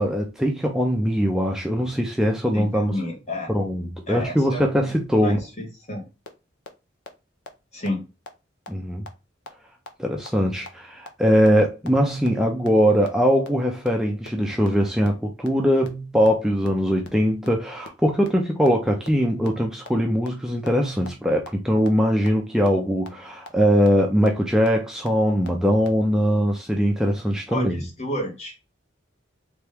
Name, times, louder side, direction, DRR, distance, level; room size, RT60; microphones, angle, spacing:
voice 1, 0.0-2.9 3.5-5.4 8.7-9.0 10.0-27.8, equal, 5° right, 0.5 m, -21 dB
voice 2, 2.5-3.5 4.1-4.9 5.2-6.0 7.7-8.0 27.5-28.5, left 1 dB, 35° left, 1.3 m, -31 dB
sound 1, 6.2-6.3 6.6-6.7 7.0-7.1 7.5-7.6 7.9-8.0 8.3-8.4 8.7-8.8 9.1-9.2 9.5-9.6 9.9-10.0 10.3-10.4 10.7-10.8 11.1-11.2 11.5-11.6 11.9-12.0 12.3-12.4 12.7-12.8 13.0-13.1 13.4-13.5 13.9-14.0 14.2-14.3 14.6-14.7 15.0-15.1 15.4-15.5 15.8-15.9 16.2-16.3 16.6-16.7 17.0-17.1 17.4-17.5 17.9-18.0 18.3-18.4 18.6-18.7 19.1-19.2 19.4-19.5 19.8-19.9 20.2-20.3 20.7-20.8 21.1-21.2 21.5-21.6 21.9-22.0 22.3-22.4 22.7-22.8 23.1-23.2 23.5-23.6 23.9-24.0 24.3-24.4 24.7-24.8 25.1-25.2 25.4-25.5 25.8-25.9, left 3 dB, 65° left, 0.7 m, -38 dB
3.3 x 3.1 x 3.4 m
head